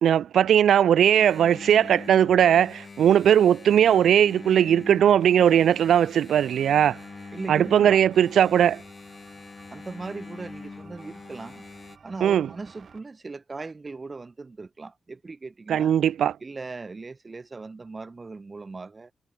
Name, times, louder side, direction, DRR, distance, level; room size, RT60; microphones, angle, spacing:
voice 1, 0.0-7.0 7.5-8.8 12.2-12.5 15.7-16.4, right 9 dB, 85° right, 0.3 m, -19 dB
Engine, 1.2-12.0, left 4 dB, 40° left, 3.8 m, -43 dB
sound 1, 6.3-13.0, right 6 dB, 60° right, 4.5 m, -54 dB
voice 2, 7.3-8.0 9.7-11.7 12.0-15.9 16.4-19.1, right 3 dB, 35° right, 1.8 m, -38 dB
cardioid pair, 60°, 0 cm